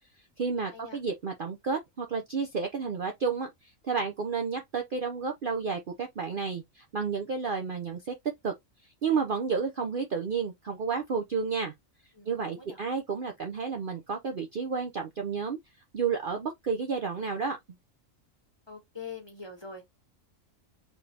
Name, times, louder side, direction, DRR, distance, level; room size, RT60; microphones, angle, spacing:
voice 1, 0.4-8.1 8.4-8.5 9.0-11.7 12.3-15.6 15.9-17.6, right 5 dB, 50° right, 0.7 m, -31 dB
voice 2, 12.1-12.8 18.7-19.8, left 5 dB, 20° left, 1.6 m, -44 dB
4.9 x 3.3 x 2.8 m
omnidirectional pair, 1.4 m